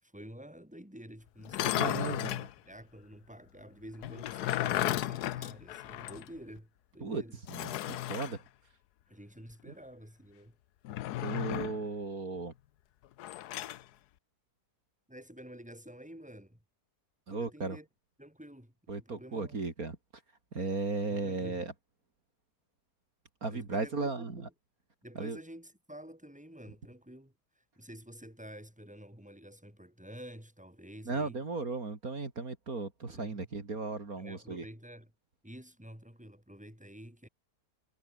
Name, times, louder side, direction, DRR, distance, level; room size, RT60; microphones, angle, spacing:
voice 1, 0.0-7.4 9.1-10.6 15.1-16.6 17.3-17.9 18.2-19.6 21.1-21.6 23.5-24.5 25.0-31.4 33.1-33.4 34.2-35.1 35.4-37.3, equal, 5° right, 6.0 m, -50 dB
sound 1, 1.4-2.5 4.0-6.3 6.6-6.7 7.5-8.4 10.8-11.8 13.2-13.8, left 14 dB, 85° left, 1.2 m, -34 dB
voice 2, 1.7-2.5 7.0-7.2 7.5-8.4 9.7-9.8 11.2-12.5 17.3-17.8 18.9-20.0 20.5-21.7 23.4-24.5 25.2-25.4 31.1-34.7, right 3 dB, 65° right, 3.6 m, -36 dB
omnidirectional pair, 1.7 m